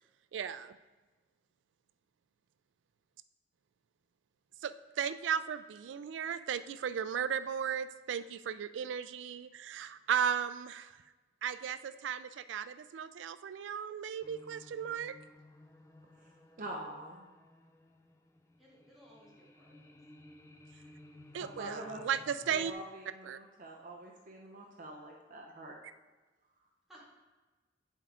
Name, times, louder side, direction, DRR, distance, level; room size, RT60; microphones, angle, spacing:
voice 1, 0.3-0.7 4.6-10.9 11.4-15.1 21.3-22.7 23.3-23.4, right 8 dB, 75° right, 14 dB, 0.3 m, -35 dB
sound 1, 14.2-22.7, left 1 dB, 15° left, 0.4 m, -57 dB
voice 2, 16.6-17.3 21.4-22.0 22.5-25.8, right 1 dB, 45° right, 0 dB, 0.7 m, -45 dB
voice 3, 18.6-20.0 26.9-27.0, equal, ahead, -7 dB, 1.9 m, -59 dB
8.6 x 5.1 x 3.7 m, 1.2 s
head